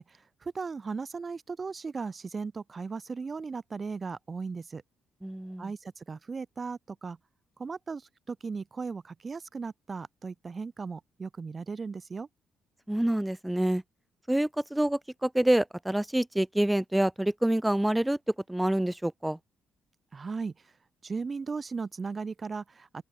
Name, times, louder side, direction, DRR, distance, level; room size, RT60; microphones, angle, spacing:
voice 1, 0.0-4.8 5.6-7.2 7.6-12.3 20.1-20.7 21.0-23.0, right 4 dB, 35° right, 1.4 m, -37 dB
voice 2, 5.2-5.7 12.9-13.8 14.3-18.2 18.5-19.4, right 1 dB, 5° right, 1.5 m, -27 dB
open air
cardioid pair, 90°, 0 cm